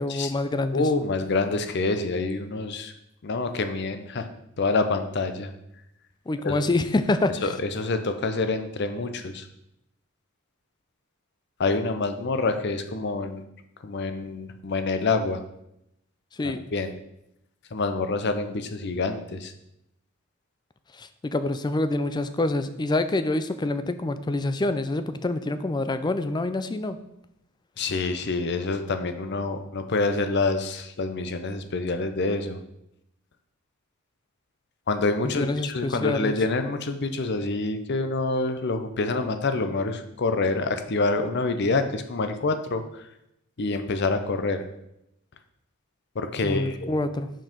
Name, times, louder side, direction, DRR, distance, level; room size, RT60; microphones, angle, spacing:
voice 1, 0.0-0.9 6.3-7.5 16.4-16.6 21.0-27.0 35.2-36.4 46.4-47.3, left 2 dB, 20° left, 11 dB, 0.4 m, -26 dB
voice 2, 0.7-2.9 3.2-4.3 4.6-5.5 6.4-6.6 7.4-9.4 11.6-13.4 13.8-15.4 16.7-16.9 17.7-19.5 27.8-32.6 34.9-42.8 43.6-44.6 46.2-46.9, left 3 dB, 55° left, 8 dB, 0.6 m, -27 dB
6.0 x 4.7 x 5.1 m, 0.81 s
head